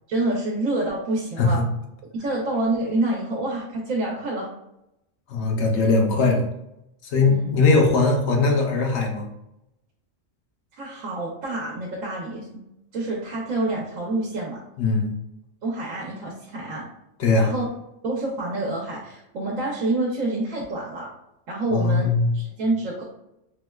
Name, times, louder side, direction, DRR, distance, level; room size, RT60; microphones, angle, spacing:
voice 1, 0.1-1.6 2.1-4.5 7.2-7.5 10.8-12.5 12.9-14.6 15.6-16.9 17.4-17.7 18.0-21.1 21.5-23.0, right 2 dB, 80° right, -3 dB, 1.0 m, -27 dB
voice 2, 5.3-6.4 7.1-9.3 14.8-15.1 17.2-17.5 21.7-22.3, left 3 dB, 65° left, 2 dB, 0.8 m, -20 dB
4.2 x 2.1 x 2.2 m, 0.86 s
omnidirectional pair, 1.3 m